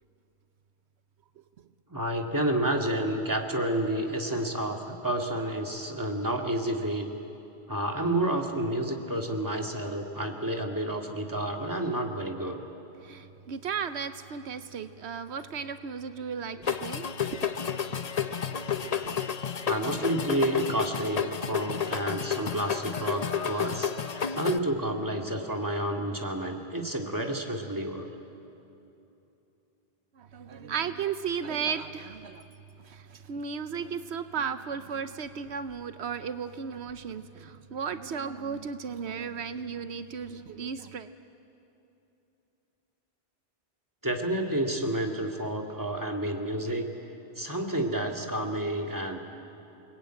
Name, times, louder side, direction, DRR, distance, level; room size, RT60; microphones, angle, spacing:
voice 1, 1.9-7.1 7.7-12.6 19.7-28.1 44.0-46.9 47.4-49.2, right 1 dB, 20° right, 1 dB, 2.2 m, -30 dB
voice 2, 13.0-17.1 17.3-17.5 18.8-18.9 30.2-32.4 32.8-41.1, right 6 dB, 85° right, 10 dB, 1.1 m, -35 dB
sound 1, 16.6-24.6, left 8 dB, 40° left, 0.8 m, -31 dB
29.5 x 20.0 x 9.0 m, 2.9 s
omnidirectional pair, 1.1 m